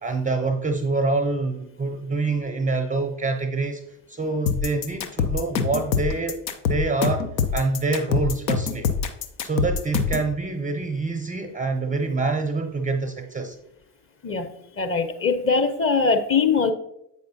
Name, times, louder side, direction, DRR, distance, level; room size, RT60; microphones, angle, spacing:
voice 1, 0.0-3.8 4.1-6.4 6.7-8.9 9.4-13.6, right 3 dB, 15° right, 6 dB, 0.4 m, -26 dB
sound 1, 4.5-10.3, left 6 dB, 85° left, 0.6 m, -24 dB
voice 2, 14.8-16.7, left 5 dB, 25° left, 8 dB, 0.7 m, -21 dB
7.8 x 4.9 x 2.7 m, 0.82 s
figure-of-eight pair, 55°, 50 cm